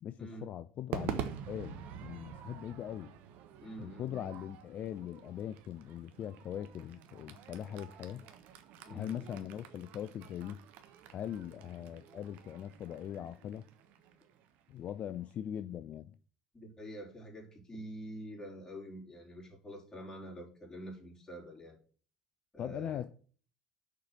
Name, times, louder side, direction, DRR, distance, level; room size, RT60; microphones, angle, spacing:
voice 1, 0.0-3.1 3.8-8.2 8.9-10.6 11.1-13.6 14.7-16.1 22.6-23.1, left 10 dB, 45° left, 0.5 m, -41 dB
Crowd / Fireworks, 0.9-15.3, right 9 dB, 60° right, 1.1 m, -47 dB
voice 2, 3.6-4.3 8.9-9.4 16.5-21.8 22.5-23.1, right 1 dB, 20° left, 4.4 m, -47 dB
6.7 x 4.9 x 6.2 m
hypercardioid pair, 70°, 3 cm